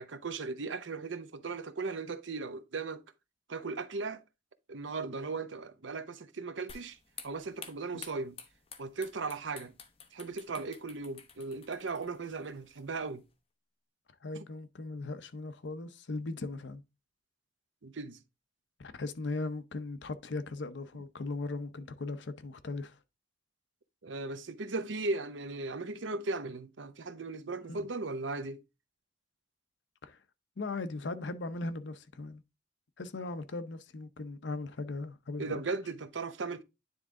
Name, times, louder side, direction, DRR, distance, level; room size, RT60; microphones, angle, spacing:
voice 1, 0.0-3.0 3.5-4.2 4.7-7.0 7.2-8.4 8.8-9.7 10.1-13.2 17.8-18.2 24.0-28.6 35.4-36.6, right 3 dB, 85° right, 0.8 m, -37 dB
sound 1, 6.7-13.3, left 6 dB, 30° left, 0.9 m, -52 dB
voice 2, 14.2-16.8 18.8-23.0 27.7-27.8 30.0-30.2 30.6-32.4 33.0-35.6, left 3 dB, 70° left, 0.7 m, -38 dB
9.6 x 3.6 x 3.6 m
head